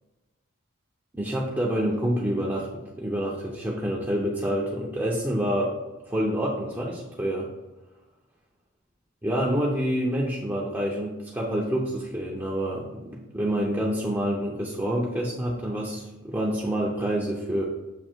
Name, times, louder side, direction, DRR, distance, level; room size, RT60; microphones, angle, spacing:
voice 1, 1.1-5.8 6.1-7.5 9.2-17.6, equal, 10° right, -5 dB, 0.7 m, -27 dB
7.4 x 2.8 x 4.5 m, 1.1 s
head